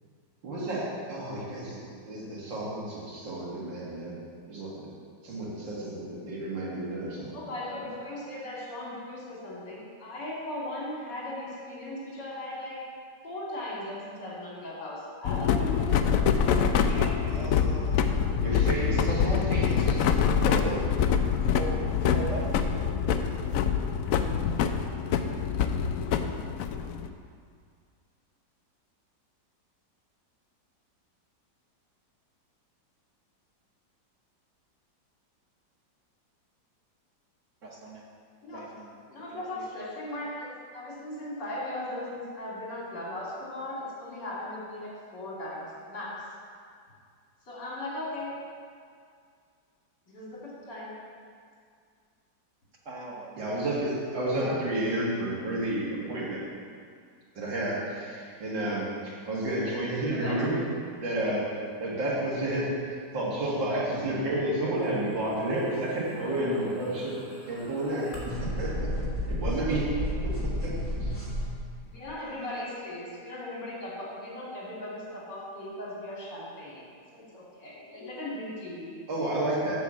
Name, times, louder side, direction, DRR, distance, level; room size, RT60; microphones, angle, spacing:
voice 1, 0.4-4.1 4.5-4.9 5.2-7.4 18.4-20.0 20.5-20.8 53.4-56.4 57.3-60.6 61.0-61.4 61.8-62.7 63.1-67.2 67.5-68.9 69.3-69.8 70.6-70.7 71.0-71.1 79.1-79.8, right 1 dB, 85° right, -6 dB, 2.8 m, -31 dB
voice 2, 7.3-12.8 13.2-17.3 38.4-38.7 39.1-46.1 47.5-48.3 50.1-50.9 60.0-60.4 69.3-70.2 71.9-78.9, left 1 dB, 65° left, -6 dB, 3.3 m, -38 dB
sound 1, 15.2-27.1, left 7 dB, 85° left, 0.7 m, -25 dB
voice 3, 17.3-18.2 18.9-20.2 21.5-22.6 37.6-38.0 38.5-38.9 39.3-39.9 52.8-53.4 54.4-54.6, right 2 dB, 50° right, -2 dB, 1.2 m, -38 dB
sound 2, 66.3-71.5, left 1 dB, 5° left, 2.2 m, -32 dB
7.9 x 5.9 x 7.2 m, 2.2 s
omnidirectional pair, 2.0 m